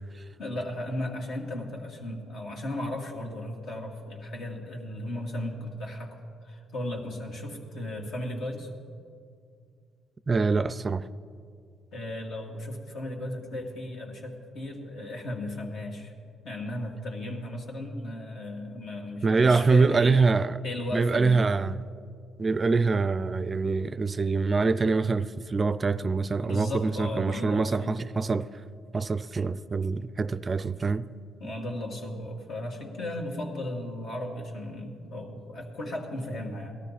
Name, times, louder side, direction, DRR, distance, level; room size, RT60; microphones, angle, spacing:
voice 1, 0.4-6.2 6.4-8.7 11.9-16.1 16.4-20.2 20.6-21.5 26.4-28.0 31.4-36.8, left 1 dB, 70° left, 2.2 m, -35 dB
voice 2, 10.3-11.1 19.2-20.6 20.9-21.8 22.4-28.5 28.9-31.1, right 4 dB, 35° right, 0.4 m, -25 dB
18.0 x 13.0 x 4.2 m
supercardioid pair, 75°, 0 cm